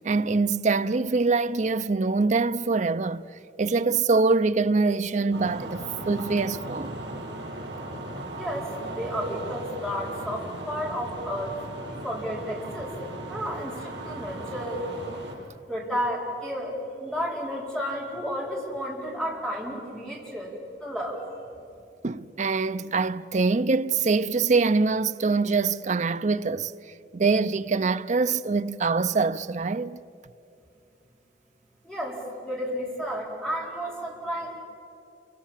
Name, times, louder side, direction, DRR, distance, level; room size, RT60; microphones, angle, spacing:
voice 1, 0.0-3.2 3.6-7.0 22.0-26.7 27.1-30.0, right 4 dB, 45° right, 0.6 m, -24 dB
sound 1, 5.3-15.3, right 1 dB, 85° right, 5.5 m, -37 dB
voice 2, 8.3-12.9 13.3-14.8 15.7-20.5 20.8-21.2 31.8-34.6, equal, 5° left, 4.8 m, -32 dB
29.0 x 25.0 x 7.4 m
head